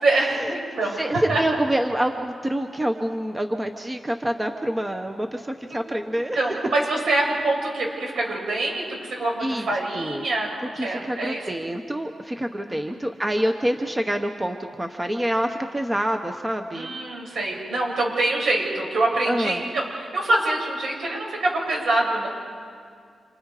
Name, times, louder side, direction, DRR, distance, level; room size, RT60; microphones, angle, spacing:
voice 1, 0.0-1.6 5.7-5.8 6.4-11.4 12.7-13.0 16.7-22.3, right 2 dB, 75° right, -2 dB, 7.0 m, -25 dB
voice 2, 0.9-6.4 9.4-9.7 9.9-10.2 10.8-16.9 19.3-19.6, right 1 dB, 15° right, 5 dB, 1.0 m, -26 dB
29.0 x 28.0 x 5.0 m, 2.2 s
wide cardioid pair, 140°, 0 cm